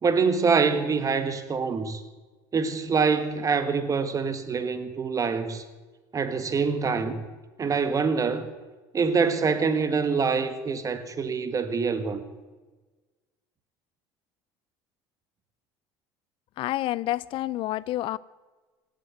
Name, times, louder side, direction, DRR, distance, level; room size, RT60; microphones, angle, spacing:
voice 1, 0.0-2.0 2.5-5.6 6.1-7.2 7.6-8.5 8.9-12.2, right 5 dB, 35° right, 1.7 m, -25 dB
voice 2, 16.6-18.2, left 15 dB, 55° left, 0.4 m, -28 dB
17.5 x 8.2 x 9.4 m
supercardioid pair, 85°, 10 cm